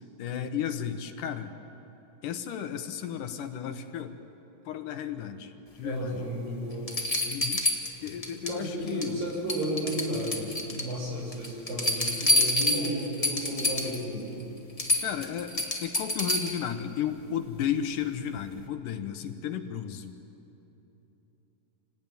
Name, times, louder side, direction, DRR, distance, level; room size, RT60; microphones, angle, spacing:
voice 1, 0.2-1.6 2.2-4.2 4.7-5.5 5.8-6.2 7.3-7.6 8.0-9.3 15.0-20.2, left 9 dB, 70° left, 8 dB, 2.5 m, -33 dB
voice 2, 5.8-6.9 8.1-8.2 8.5-14.2, right 1 dB, 75° right, -3 dB, 8.8 m, -33 dB
sound 1, 6.2-6.3 6.9-8.6 8.9-9.2 9.5-10.9 11.3-14.0 14.4-14.5 14.8-16.7 18.4-18.5, left 1 dB, 55° left, 0.4 m, -28 dB
28.0 x 19.0 x 9.2 m, 3.0 s
omnidirectional pair, 4.0 m